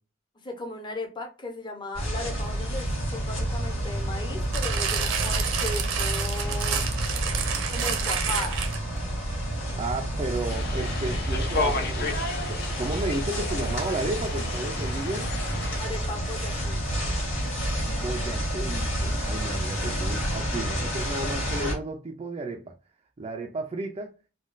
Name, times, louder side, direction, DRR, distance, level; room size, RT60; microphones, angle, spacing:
voice 1, 0.4-6.9 7.7-8.7 9.7-10.0 15.8-17.1, left 2 dB, 25° left, 0.7 m, -37 dB
sound 1, 1.9-21.7, equal, 90° left, 1.8 m, -29 dB
sound 2, 4.5-9.0 9.7-9.8, right 7 dB, 70° right, 0.7 m, -29 dB
voice 2, 9.8-12.2 12.5-15.4 17.9-22.7 23.2-24.1, right 2 dB, 30° right, 0.4 m, -33 dB
sound 3, 10.5-15.8, left 3 dB, 55° left, 0.7 m, -33 dB
3.6 x 2.2 x 2.5 m
head